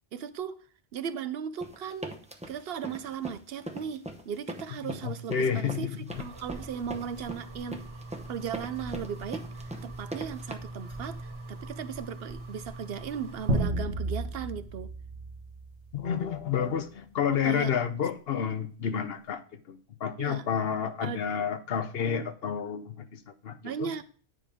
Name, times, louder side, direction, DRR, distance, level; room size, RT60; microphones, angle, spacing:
voice 1, 0.1-0.6 0.9-2.2 2.5-7.8 8.3-14.9 17.4-17.7 20.2-20.5 21.0-21.2 23.6-24.0, right 7 dB, 65° right, 0.8 m, -37 dB
sound 1, 1.6-10.5, right 1 dB, 5° right, 0.7 m, -40 dB
voice 2, 4.8-6.2 15.9-19.4 19.7-23.9, left 7 dB, 65° left, 0.9 m, -30 dB
sound 2, 6.1-13.6, right 2 dB, 30° right, 1.9 m, -42 dB
sound 3, 13.5-16.3, right 1 dB, 80° right, 1.5 m, -32 dB
9.9 x 5.1 x 3.5 m
omnidirectional pair, 1.1 m